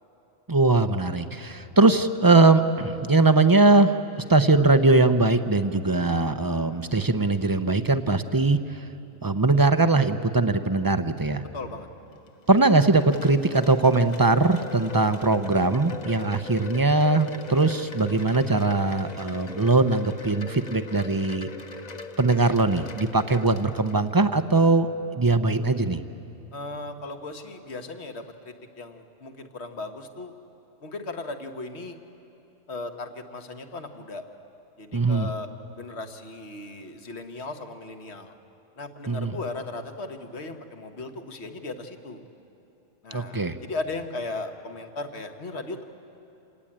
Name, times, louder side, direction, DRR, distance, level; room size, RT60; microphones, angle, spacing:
voice 1, 0.5-8.8 9.2-11.4 12.5-21.5 22.2-24.9 25.2-26.0 34.9-35.3 39.1-39.3 43.1-43.6, right 3 dB, 25° right, 10 dB, 0.5 m, -21 dB
voice 2, 11.5-11.9 26.5-30.3 30.8-32.0 32.7-34.2 34.8-35.5 35.8-38.3 38.8-42.2 43.0-45.9, left 2 dB, 60° left, 6 dB, 1.6 m, -37 dB
Wind chime, 12.1-24.4, left 4 dB, 40° left, 0.9 m, -41 dB
28.0 x 18.5 x 8.8 m, 3.0 s
omnidirectional pair, 1.3 m